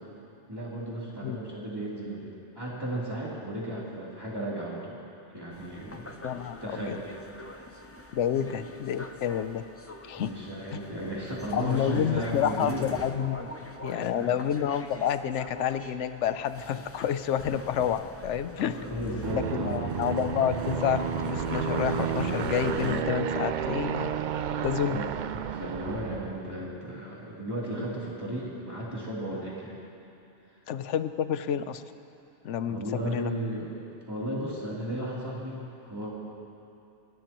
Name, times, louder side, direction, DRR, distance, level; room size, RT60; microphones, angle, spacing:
voice 1, 0.5-5.0 5.3-6.1 6.6-7.0 7.5-7.6 8.3-8.6 10.1-12.8 13.6-14.5 18.5-19.9 24.9-29.7 32.6-33.7 34.1-36.1, right 1 dB, 20° right, -7 dB, 3.2 m, -35 dB
sound 1, 5.5-23.0, left 2 dB, 20° left, 0.4 m, -42 dB
voice 2, 6.2-7.0 8.1-9.6 10.0-10.3 11.5-13.5 13.8-18.8 19.3-24.1 24.6-25.0 30.7-31.8 32.4-33.3, left 9 dB, 80° left, 12 dB, 1.0 m, -29 dB
Aircraft, 19.2-26.6, right 8 dB, 60° right, 0.5 m, -31 dB
28.0 x 13.0 x 3.0 m, 2.8 s
omnidirectional pair, 1.2 m